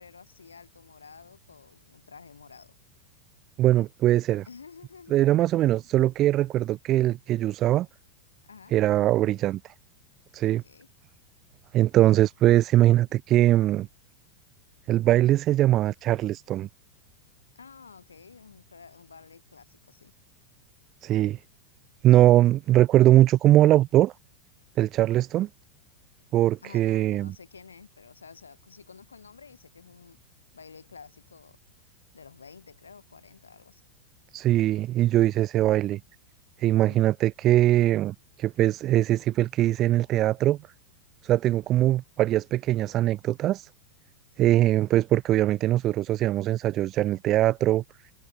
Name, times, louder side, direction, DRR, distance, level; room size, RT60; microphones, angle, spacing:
voice 1, 0.0-2.7 4.4-5.2 8.4-8.8 10.4-10.9 17.5-20.1 26.6-30.2 30.5-31.6 32.1-33.8 36.6-37.0 44.4-44.6, left 5 dB, 75° left, 4.3 m, -50 dB
voice 2, 3.6-4.5 5.1-7.9 8.7-9.6 10.3-10.6 11.7-13.9 14.9-16.7 21.0-21.4 22.0-24.1 24.8-25.5 26.3-27.3 34.3-36.0 36.6-40.6 41.2-43.7 44.4-47.8, right 14 dB, 35° right, 1.0 m, -21 dB
figure-of-eight pair, 90°, 0 cm